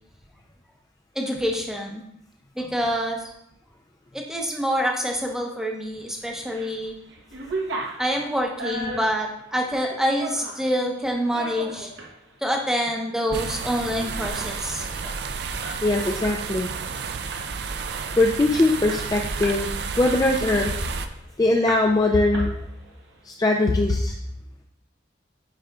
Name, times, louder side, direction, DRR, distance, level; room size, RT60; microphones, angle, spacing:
voice 1, 1.1-2.0 2.6-3.3 4.1-6.9 8.0-11.9 12.4-15.2, equal, 5° right, 1 dB, 0.7 m, -26 dB
sound 1, 6.2-6.8 7.1-10.7 11.2-12.1 12.6-12.7 13.1-13.4 13.7-13.8 14.1-16.4 16.7-16.9 17.3-17.8 18.2-18.3 18.5-19.7 20.0-21.2 21.7-22.1 22.3-23.0, right 2 dB, 80° right, 1.0 m, -35 dB
sound 2, 13.3-21.1, right 5 dB, 60° right, 0.4 m, -31 dB
voice 2, 15.8-16.7 18.2-19.7 20.0-20.7 21.4-22.5 23.2-24.1, left 2 dB, 20° left, 1 dB, 0.3 m, -21 dB
9.0 x 4.9 x 2.3 m, 0.77 s
head